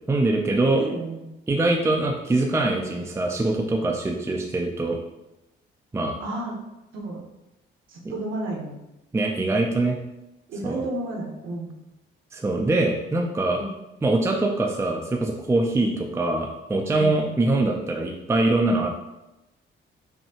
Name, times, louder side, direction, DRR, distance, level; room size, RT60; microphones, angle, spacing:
voice 1, 0.1-0.8 1.5-5.0 5.9-6.2 9.1-10.0 10.6-10.8 12.3-13.6 14.0-18.9, right 2 dB, 15° right, 1 dB, 0.4 m, -23 dB
voice 2, 0.8-1.3 6.2-6.6 6.9-7.2 7.9-8.8 10.5-11.7 13.5-13.7 16.9-17.2, right 2 dB, 75° right, -2 dB, 1.1 m, -32 dB
5.5 x 2.2 x 2.9 m, 0.93 s
cardioid pair, 90°, 20 cm